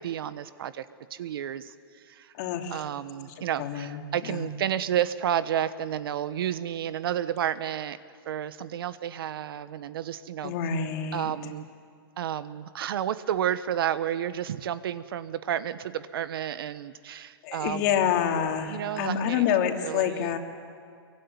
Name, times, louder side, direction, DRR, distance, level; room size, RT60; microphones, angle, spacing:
voice 1, 0.0-2.3 2.7-8.0 8.2-10.5 11.1-11.7 12.2-18.1 18.7-19.5 19.8-20.4, right 10 dB, 65° right, 14 dB, 1.2 m, -31 dB
voice 2, 2.3-2.8 3.6-4.4 10.4-11.3 17.4-20.4, left 8 dB, 45° left, 3 dB, 3.0 m, -27 dB
24.5 x 23.5 x 9.6 m, 2.2 s
hypercardioid pair, 145°, 13 cm